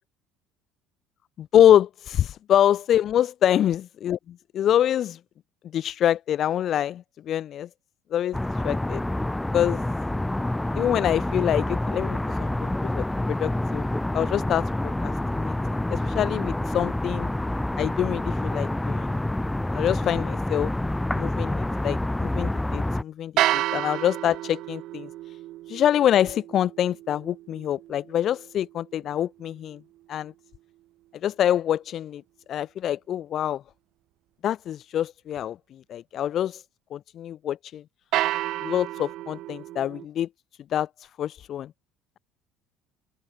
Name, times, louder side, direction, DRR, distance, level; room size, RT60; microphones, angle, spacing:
voice 1, 1.5-4.2 4.5-5.2 5.7-7.0 7.3-7.7 8.1-8.4 8.6-9.0 9.5-9.8 10.7-12.7 13.0-13.1 13.4-13.8 14.1-14.6 15.0-15.1 15.4-15.5 15.9-17.3 17.8-19.1 19.7-20.7 21.1-25.1 25.7-29.8 30.1-30.3 31.2-32.2 32.5-33.6 34.4-35.5 35.9-36.6 36.9-37.6 38.6-40.3 40.7-40.9 41.2-41.7, left 10 dB, 40° left, 1.1 m, -25 dB
sound 1, 8.3-23.0, left 1 dB, 5° left, 0.6 m, -27 dB
sound 2, 23.4-29.5 38.1-40.1, right 15 dB, 55° right, 2.0 m, -31 dB
open air
cardioid pair, 155°, 0 cm